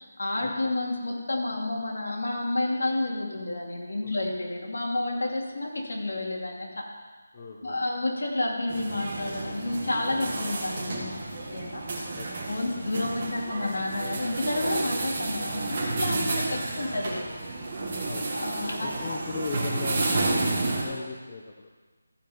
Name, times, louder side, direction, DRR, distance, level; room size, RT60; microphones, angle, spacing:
voice 1, 0.0-6.9 7.6-11.8 12.2-17.2 18.3-19.1, left 2 dB, 75° left, -1 dB, 2.6 m, -30 dB
voice 2, 7.3-7.8 12.1-12.5 16.5-16.6 18.1-18.3 18.8-21.7, left 4 dB, 20° left, -1 dB, 0.7 m, -38 dB
sound 1, 8.7-20.8, right 2 dB, 25° right, 1.6 m, -31 dB
14.0 x 5.3 x 5.6 m, 1.3 s
figure-of-eight pair, 175°, 0 cm